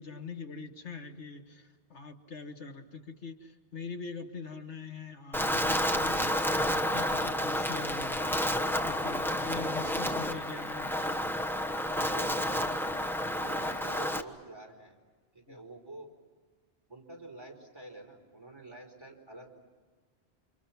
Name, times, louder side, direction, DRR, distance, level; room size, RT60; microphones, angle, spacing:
voice 1, 0.0-6.3 6.7-10.9 15.5-15.6, left 4 dB, 85° left, 5 dB, 1.9 m, -43 dB
Wind, 5.3-14.2, equal, ahead, 1.1 m, -30 dB
voice 2, 12.1-12.7 13.4-14.9 15.3-16.1 16.9-19.5, right 2 dB, 25° right, 0 dB, 4.7 m, -48 dB
30.0 x 26.5 x 5.9 m, 1.5 s
omnidirectional pair, 1.1 m